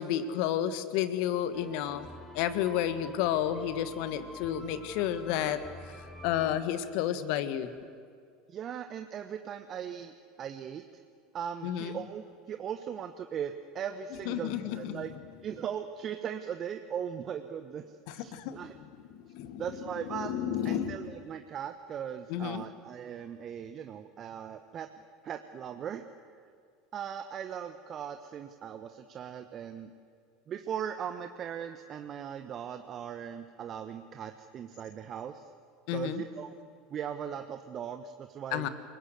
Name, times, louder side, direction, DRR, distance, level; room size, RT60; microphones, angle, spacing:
voice 1, 0.0-2.1 2.3-5.6 5.9-7.7 11.6-12.0 14.2-15.2 18.1-18.6 19.1-19.6 20.1-21.1 22.3-22.6 35.9-36.2 38.5-38.7, left 10 dB, 60° left, 12 dB, 1.6 m, -31 dB
sound 1, 1.5-6.6, equal, ahead, 5.6 m, -48 dB
voice 2, 8.5-10.8 11.3-15.1 15.4-17.8 18.1-18.7 19.6-20.3 20.6-24.9 25.2-26.0 26.9-29.9 30.5-35.5 35.9-36.6 36.9-38.7, right 8 dB, 40° right, 7 dB, 1.2 m, -39 dB
28.5 x 19.0 x 8.1 m, 2.3 s
figure-of-eight pair, 75°, 0 cm